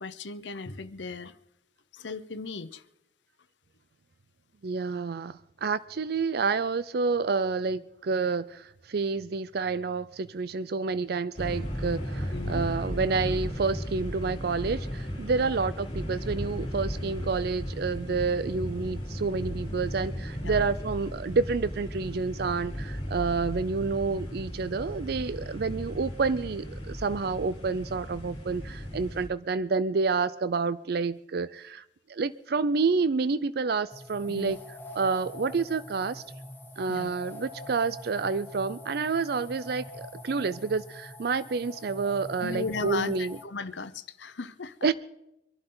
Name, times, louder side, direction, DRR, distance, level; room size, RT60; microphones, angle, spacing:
voice 1, 0.0-1.4 1.9-2.8 12.3-12.7 15.4-15.5 20.5-20.6 34.3-34.5 36.9-37.1 42.4-44.9, left 4 dB, 80° left, 0.9 m, -36 dB
voice 2, 4.6-31.8 32.1-34.6 35.0-36.2 36.8-43.4 44.8-44.9, right 4 dB, 60° right, 0.5 m, -29 dB
sound 1, 11.4-29.3, equal, 35° left, 4.2 m, -35 dB
sound 2, 33.9-43.4, left 1 dB, 10° left, 1.5 m, -44 dB
25.0 x 11.5 x 3.9 m
head